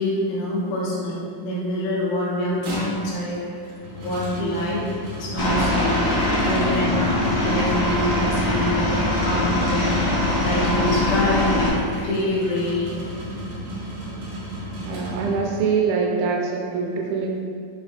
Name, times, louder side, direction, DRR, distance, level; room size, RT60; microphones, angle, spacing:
voice 1, 0.0-3.6 4.0-4.8 5.2-6.1 6.4-10.0 10.4-13.1, left 1 dB, 80° left, -5 dB, 3.0 m, -26 dB
sound 1, 2.4-15.8, equal, 60° right, 1.8 m, -34 dB
voice 2, 4.4-4.8 14.8-17.4, right 5 dB, 80° right, 0 dB, 2.5 m, -24 dB
Aircraft, 5.4-11.7, left 1 dB, 55° left, 1.9 m, -22 dB
5.9 x 4.5 x 4.1 m, 2.3 s
omnidirectional pair, 4.4 m